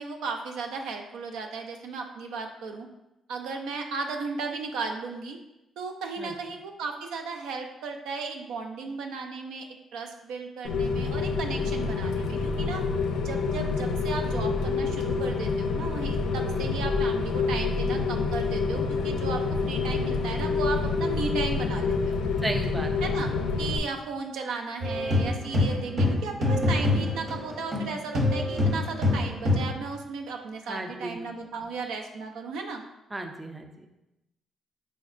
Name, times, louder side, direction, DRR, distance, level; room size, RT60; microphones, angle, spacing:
voice 1, 0.0-2.9 3.3-5.4 5.8-9.7 9.9-12.8 13.2-22.2 23.0-23.3 23.6-32.8, right 4 dB, 90° right, 4 dB, 0.3 m, -35 dB
Rain, 10.6-23.8, left 4 dB, 80° left, 0.3 m, -27 dB
voice 2, 22.4-23.1 30.7-31.2 33.1-33.9, right 1 dB, 20° right, 4 dB, 0.4 m, -34 dB
sound 1, 24.8-27.9 28.1-29.8, left 2 dB, 55° right, 0.9 m, -25 dB
5.0 x 2.0 x 2.4 m, 0.92 s
cardioid pair, 90°, 0 cm